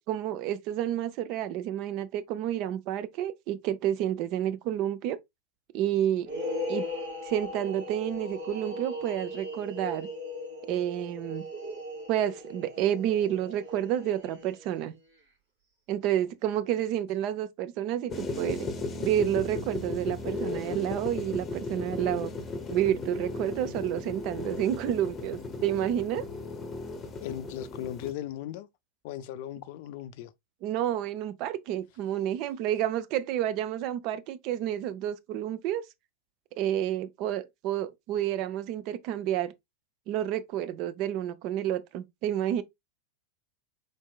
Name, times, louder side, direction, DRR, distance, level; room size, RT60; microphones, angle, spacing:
voice 1, 0.0-5.2 5.7-6.3 6.7-6.9 7.2-10.1 10.7-11.4 12.1-14.9 15.9-18.7 19.0-22.3 22.7-26.3 30.6-35.8 36.6-39.5 40.1-42.6, right 11 dB, 40° right, 0.5 m, -30 dB
sound 1, 6.2-14.8, left 1 dB, 55° right, 3.3 m, -38 dB
sound 2, 18.1-28.1, left 3 dB, 20° left, 0.9 m, -36 dB
voice 2, 27.2-28.7 29.0-30.3, left 11 dB, 50° left, 0.4 m, -37 dB
4.6 x 4.4 x 2.3 m
figure-of-eight pair, 90°, 0 cm